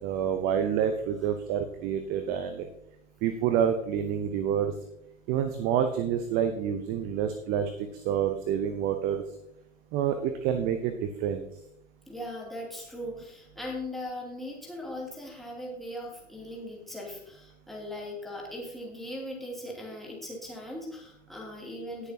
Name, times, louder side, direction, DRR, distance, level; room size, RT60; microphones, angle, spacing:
voice 1, 0.0-2.7 3.2-4.7 5.3-9.2 9.9-11.4, right 8 dB, 25° right, 8 dB, 0.7 m, -28 dB
voice 2, 12.1-22.1, left 1 dB, ahead, -3 dB, 2.7 m, -39 dB
18.0 x 6.8 x 2.8 m, 0.77 s
figure-of-eight pair, 105°, 40 cm